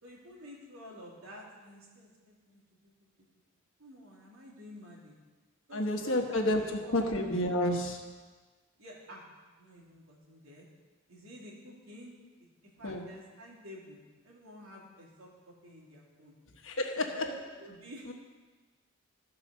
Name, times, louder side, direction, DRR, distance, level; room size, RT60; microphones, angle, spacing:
voice 1, 0.0-2.9 3.8-5.1 5.7-7.1 8.8-10.7 11.1-12.1 12.8-14.0 14.2-16.3 17.0-18.1, equal, 90° right, -3 dB, 2.6 m, -50 dB
voice 2, 5.7-6.6 6.9-8.0 12.8-13.0 16.6-17.2 18.1-18.2, left 1 dB, 65° left, 3 dB, 1.3 m, -30 dB
14.5 x 4.9 x 6.4 m, 1.3 s
head